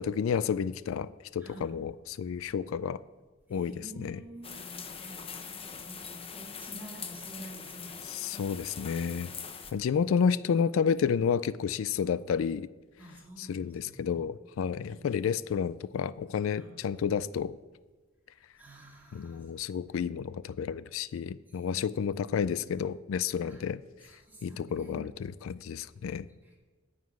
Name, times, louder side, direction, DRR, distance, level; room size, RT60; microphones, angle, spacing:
voice 1, 0.0-3.0 3.5-4.2 8.1-9.3 9.7-12.7 13.4-17.5 19.1-23.8 24.4-26.3, left 7 dB, 80° left, 17 dB, 0.3 m, -31 dB
voice 2, 1.4-1.7 3.5-8.5 9.6-9.8 13.0-14.1 14.8-15.2 16.6-16.8 18.6-19.5 21.5-22.3 23.4-23.6 24.0-25.1 25.7-26.6, right 1 dB, 10° right, -2 dB, 2.3 m, -49 dB
sound 1, 4.4-9.7, left 6 dB, 30° left, 0.8 m, -42 dB
9.6 x 5.9 x 8.5 m, 1.2 s
head